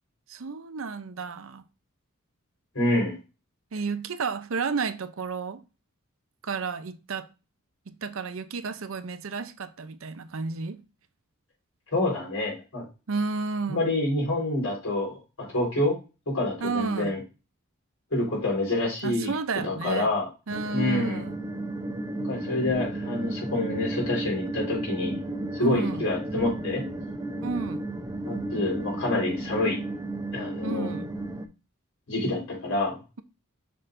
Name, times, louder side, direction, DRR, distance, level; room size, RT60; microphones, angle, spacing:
voice 1, 0.3-1.6 3.7-5.6 6.4-7.3 7.9-10.8 13.1-13.8 16.6-17.1 19.0-20.1 20.5-21.4 25.6-26.0 27.4-27.8 30.6-31.1, right 4 dB, 65° right, 0.6 m, -32 dB
voice 2, 2.7-3.2 11.9-12.9 13.7-16.0 16.3-17.2 18.1-19.3 19.6-20.3 20.7-21.2 22.2-25.2 25.5-26.8 28.3-29.8 30.3-30.9 32.1-33.0, left 2 dB, 75° left, 3.9 m, -27 dB
sound 1, 20.5-31.5, right 2 dB, 15° right, 0.6 m, -33 dB
6.5 x 5.8 x 2.6 m
head